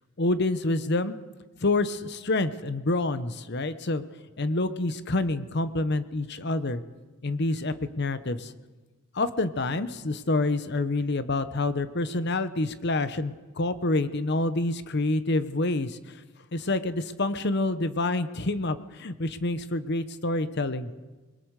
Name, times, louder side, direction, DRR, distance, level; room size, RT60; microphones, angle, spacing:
voice 1, 0.2-1.2 1.6-4.0 4.4-6.8 7.2-8.5 9.1-16.0 16.5-20.9, left 2 dB, 50° left, 12 dB, 0.9 m, -27 dB
26.5 x 21.5 x 4.8 m, 1.3 s
head